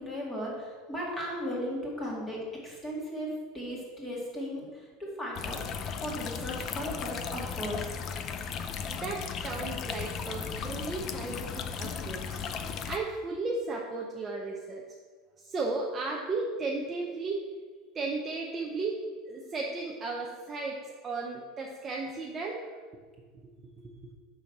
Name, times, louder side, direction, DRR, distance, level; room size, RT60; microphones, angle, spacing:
voice 1, 0.0-5.6 6.0-7.9, equal, 10° left, -4 dB, 2.3 m, -36 dB
sound 1, 5.4-13.0, left 6 dB, 30° left, 0.5 m, -36 dB
voice 2, 8.8-12.4 12.9-14.8 15.4-17.4 17.9-19.0 19.3-22.6 23.8-24.1, right 3 dB, 15° right, -1 dB, 0.7 m, -35 dB
6.7 x 6.3 x 7.2 m, 1.5 s
supercardioid pair, 175°, 0 cm